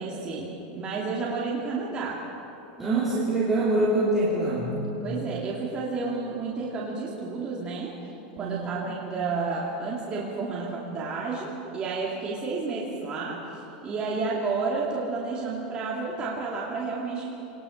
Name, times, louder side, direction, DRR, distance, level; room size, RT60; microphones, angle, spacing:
voice 1, 0.0-2.2 5.0-7.9 8.4-13.4 13.8-17.3, right 4 dB, 20° right, -5 dB, 2.6 m, -31 dB
voice 2, 2.8-4.8 8.4-9.0, right 2 dB, 5° right, -9 dB, 3.2 m, -25 dB
26.0 x 19.5 x 6.5 m, 3.0 s
supercardioid pair, 170°, 5 cm